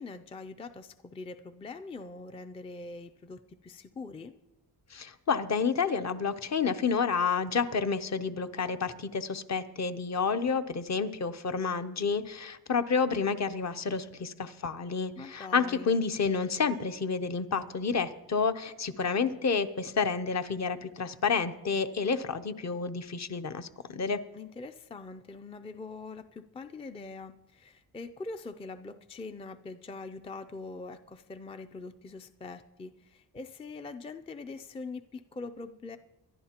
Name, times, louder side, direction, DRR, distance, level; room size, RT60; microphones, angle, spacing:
voice 1, 0.0-4.3 15.2-15.9 24.3-36.0, left 3 dB, 15° left, 10 dB, 0.4 m, -43 dB
voice 2, 4.9-24.2, left 5 dB, 45° left, 9 dB, 0.7 m, -30 dB
24.0 x 11.0 x 2.9 m, 1.0 s
cardioid pair, 105°, 39 cm